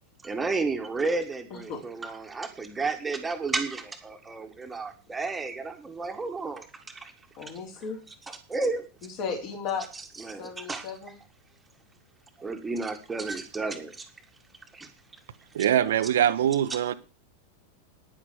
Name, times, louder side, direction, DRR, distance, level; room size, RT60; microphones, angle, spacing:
voice 1, 0.2-6.7 6.9-7.1 8.3-8.9 9.9-10.8 12.4-14.1 14.7-14.9, right 3 dB, 10° right, 1.7 m, -32 dB
voice 2, 7.4-8.0 9.0-9.9 10.4-11.1, left 6 dB, 40° left, 4.8 m, -35 dB
voice 3, 15.5-16.9, right 10 dB, 60° right, 0.9 m, -23 dB
10.5 x 10.0 x 7.1 m
figure-of-eight pair, 90°, 0 cm